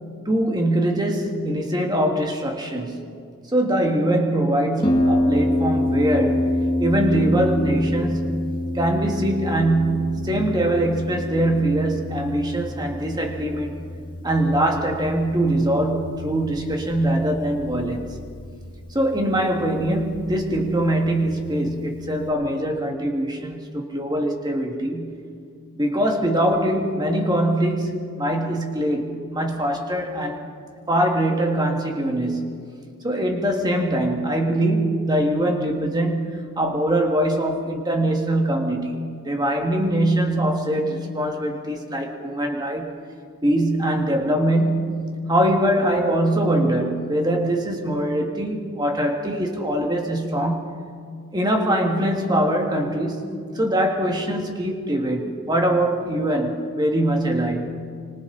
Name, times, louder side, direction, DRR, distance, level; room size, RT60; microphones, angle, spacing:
voice 1, 0.3-3.1 3.5-6.5 6.8-13.8 14.2-18.1 18.9-25.2 25.8-30.5 30.9-32.7 33.0-42.9 43.4-50.7 51.3-53.3 53.5-57.8, right 1 dB, 20° right, 2 dB, 2.2 m, -22 dB
Harp, 4.8-22.3, left 1 dB, 20° left, 2.3 m, -28 dB
26.0 x 25.5 x 4.2 m, 2.2 s
head